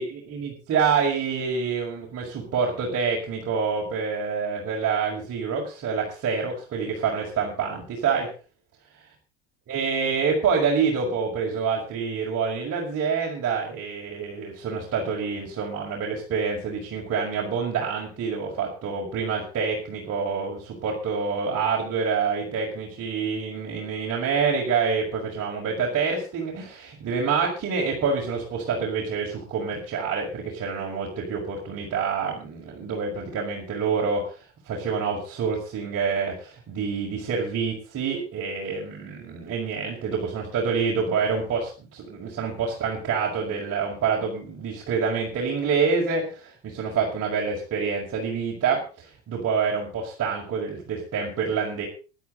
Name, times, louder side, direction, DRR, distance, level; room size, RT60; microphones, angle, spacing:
voice 1, 0.0-8.3 9.7-51.9, right 5 dB, 40° right, -3 dB, 5.6 m, -27 dB
18.5 x 12.0 x 4.0 m, 0.36 s
figure-of-eight pair, 75°, 37 cm